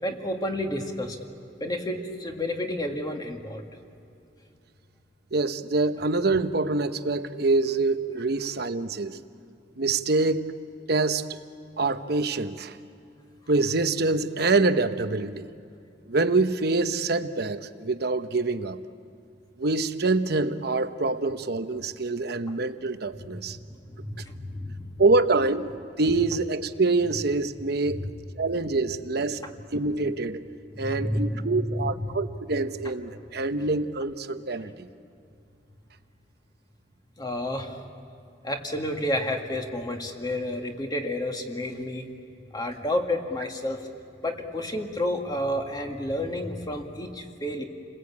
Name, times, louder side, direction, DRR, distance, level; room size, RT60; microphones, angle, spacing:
voice 1, 0.0-1.2 1.6-3.6 23.2-23.3 23.8-24.9 28.0-28.1 30.7-32.1 34.6-34.7 37.2-37.8 38.4-42.1 42.5-43.8 44.2-47.6, left 1 dB, 25° left, 3 dB, 2.0 m, -30 dB
voice 2, 5.3-9.2 9.8-10.5 10.9-11.4 11.8-12.8 13.5-15.5 16.1-18.8 19.6-23.6 25.0-28.1 28.4-29.4 29.7-30.4 30.8-34.9, right 3 dB, 60° right, 9 dB, 1.0 m, -25 dB
30.0 x 21.0 x 8.5 m, 2.6 s
head